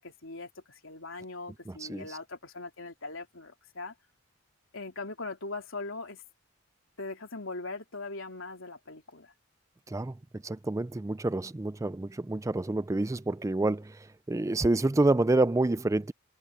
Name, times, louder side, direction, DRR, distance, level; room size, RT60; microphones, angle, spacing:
voice 1, 0.0-3.9 4.7-6.2 7.0-9.3, left 3 dB, 75° left, 3.2 m, -40 dB
voice 2, 1.7-2.2 9.9-16.1, right 2 dB, 15° right, 0.3 m, -28 dB
head